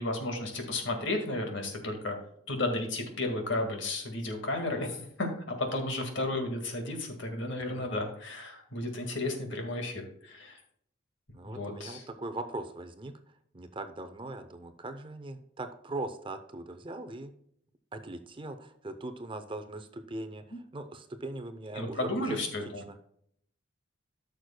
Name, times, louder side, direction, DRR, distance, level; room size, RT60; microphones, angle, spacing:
voice 1, 0.0-2.2 2.5-10.6 11.5-12.1 21.8-23.0, left 2 dB, 60° left, 4 dB, 1.9 m, -33 dB
voice 2, 11.3-13.2 13.5-17.4 17.9-22.5, right 2 dB, 25° right, 8 dB, 0.6 m, -40 dB
14.0 x 6.5 x 2.2 m, 0.69 s
head